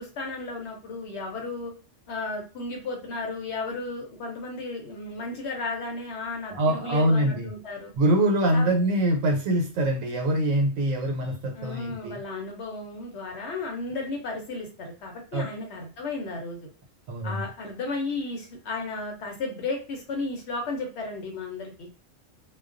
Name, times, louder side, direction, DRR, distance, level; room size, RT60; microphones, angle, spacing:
voice 1, 0.0-1.7 2.1-7.9 8.5-8.7 11.5-16.7 17.2-21.9, left 3 dB, 65° left, 1 dB, 0.8 m, -34 dB
voice 2, 6.5-7.5 8.0-12.2 15.3-15.5 17.1-17.4, right 1 dB, 85° right, 2 dB, 1.0 m, -24 dB
2.3 x 2.2 x 2.4 m, 0.34 s
omnidirectional pair, 1.3 m